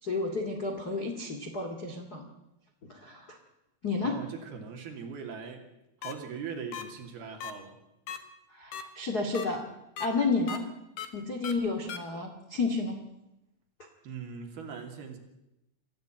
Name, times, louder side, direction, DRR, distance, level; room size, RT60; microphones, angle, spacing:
voice 1, 0.0-2.2 2.8-3.4 3.8-4.2 8.5-9.7 10.0-10.7 11.1-13.0, left 3 dB, 45° left, 3 dB, 1.3 m, -31 dB
voice 2, 4.0-5.7 6.0-7.8 14.0-15.2, right 6 dB, 55° right, 4 dB, 4.2 m, -40 dB
sound 1, 6.0-6.1 6.7-6.8 7.4-7.5 8.1-8.2 8.7-8.8 9.3-9.5 10.0-10.1 10.5-10.6 11.0-11.1 11.4-11.5 11.9-12.0, left 8 dB, 60° left, 2.4 m, -37 dB
25.0 x 15.0 x 9.1 m, 0.91 s
omnidirectional pair, 5.8 m